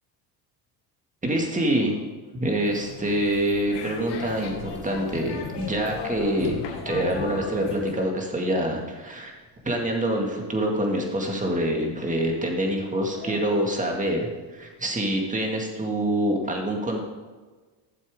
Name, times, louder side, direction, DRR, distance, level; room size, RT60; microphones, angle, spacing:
voice 1, 1.2-2.0 2.3-6.6 6.8-9.4 9.6-17.0, right 1 dB, 15° right, 1 dB, 2.1 m, -26 dB
sound 1, 2.6-8.0, left 5 dB, 65° left, 2.0 m, -37 dB
sound 2, 6.4-8.9 9.1-9.2 9.5-9.6 9.9-10.0 11.3-11.4 13.1-13.9, left 4 dB, 20° left, 1.9 m, -39 dB
13.5 x 7.2 x 3.7 m, 1.3 s
cardioid pair, 100°, 44 cm